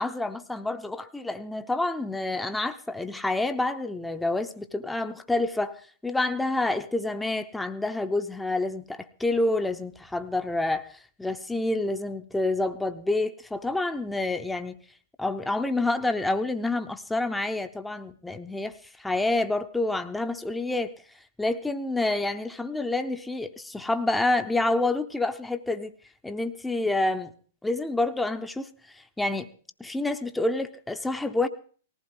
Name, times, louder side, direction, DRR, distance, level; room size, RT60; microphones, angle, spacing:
voice 1, 0.0-14.8 15.2-20.9 21.4-25.9 26.2-27.3 27.6-29.5 29.8-31.5, left 2 dB, 5° left, 8 dB, 0.7 m, -28 dB
19.0 x 15.0 x 3.8 m, 0.43 s
figure-of-eight pair, 110°, 0 cm